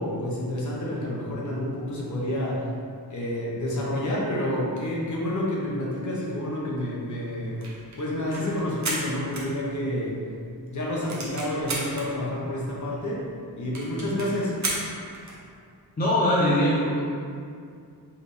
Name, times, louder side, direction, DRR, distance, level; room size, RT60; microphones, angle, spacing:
voice 1, 0.0-2.7 3.1-7.6 8.0-10.2 10.7-13.2 13.6-14.5, left 1 dB, 45° left, -5 dB, 0.9 m, -29 dB
sound 1, 7.4-10.1 10.5-10.6 10.8-12.1 12.7-12.8 12.9-13.0 13.3-13.4 13.7-15.4, right 2 dB, 45° right, 0.8 m, -33 dB
voice 2, 16.0-17.0, left 1 dB, 25° left, -7 dB, 0.6 m, -21 dB
4.8 x 3.1 x 3.2 m, 2.3 s
wide cardioid pair, 160°, 39 cm